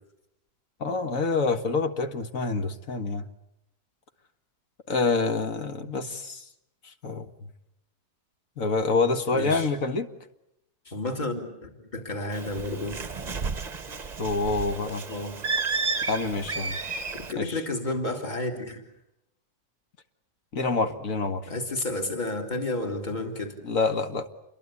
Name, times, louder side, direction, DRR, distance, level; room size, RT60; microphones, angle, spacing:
voice 1, 0.8-3.3 4.9-6.4 7.0-7.3 8.6-10.1 14.2-15.0 16.1-16.8 17.4-17.6 20.5-21.5 23.6-24.3, left 3 dB, 55° left, 8 dB, 2.0 m, -27 dB
voice 2, 9.3-9.7 10.9-13.0 15.1-15.4 17.2-18.8 21.5-23.5, left 2 dB, 25° left, 3 dB, 3.4 m, -31 dB
Bird, 12.3-17.3, right 4 dB, 30° right, 1.0 m, -32 dB
29.0 x 22.5 x 8.5 m, 0.84 s
omnidirectional pair, 1.7 m